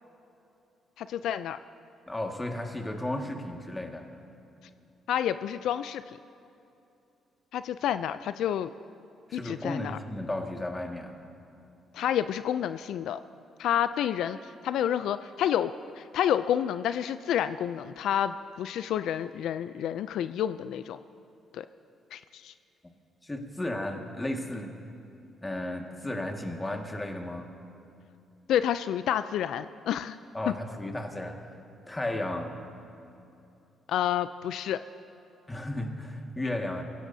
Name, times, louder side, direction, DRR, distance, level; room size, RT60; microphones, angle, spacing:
voice 1, 1.0-1.6 5.1-6.2 7.5-8.7 9.3-10.0 11.9-13.2 13.6-21.0 21.5-21.7 22.1-22.5 28.5-30.2 30.5-30.6 33.9-34.8, left 10 dB, 80° left, 12 dB, 0.3 m, -29 dB
voice 2, 2.1-4.1 9.3-11.2 23.2-24.7 25.4-27.5 30.3-31.5 31.9-32.6 35.5-36.8, left 1 dB, 15° left, 2 dB, 1.8 m, -34 dB
24.0 x 16.5 x 2.7 m, 2.8 s
cardioid pair, 90°, 0 cm